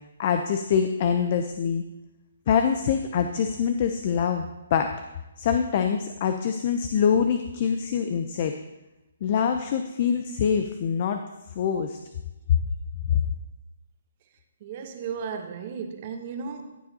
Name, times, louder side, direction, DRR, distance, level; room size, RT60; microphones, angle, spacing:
voice 1, 0.2-1.8 2.5-4.9 5.4-8.5 9.2-11.2 11.6-12.0 12.5-12.6 13.0-13.2, left 7 dB, 40° left, 6 dB, 0.6 m, -24 dB
voice 2, 14.6-16.8, right 6 dB, 40° right, 6 dB, 1.0 m, -35 dB
15.0 x 6.8 x 2.8 m, 0.96 s
hypercardioid pair, 145°, 0 cm